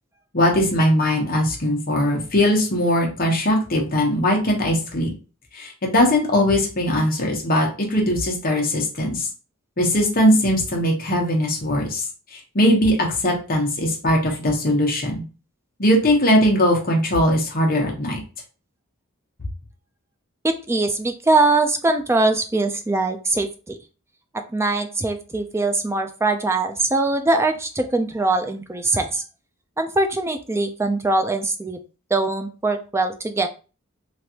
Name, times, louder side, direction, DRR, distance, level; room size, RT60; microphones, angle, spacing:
voice 1, 0.3-5.1 5.5-9.3 9.8-12.1 12.3-15.2 15.8-18.2, left 1 dB, 40° left, 0 dB, 1.0 m, -20 dB
voice 2, 20.4-23.8 24.5-29.2 29.8-31.8 32.1-33.5, right 2 dB, 10° right, 6 dB, 0.3 m, -22 dB
3.2 x 2.6 x 2.8 m, 0.34 s
head